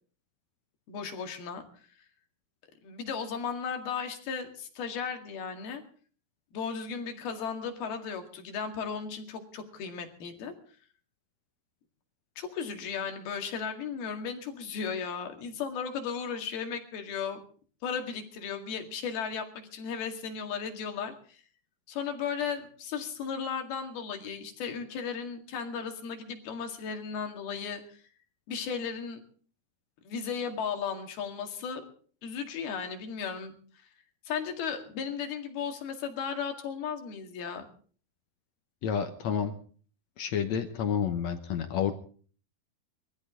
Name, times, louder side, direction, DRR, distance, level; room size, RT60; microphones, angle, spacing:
voice 1, 0.9-1.6 2.8-5.8 6.5-10.5 12.4-17.4 17.8-21.4 21.9-28.0 28.5-29.2 30.1-31.8 32.2-33.5 34.3-37.6, left 6 dB, 85° left, 5 dB, 4.0 m, -35 dB
voice 2, 38.8-39.5 40.2-41.9, left 8 dB, 65° left, 8 dB, 1.8 m, -29 dB
22.5 x 14.5 x 3.7 m, 0.43 s
omnidirectional pair, 4.3 m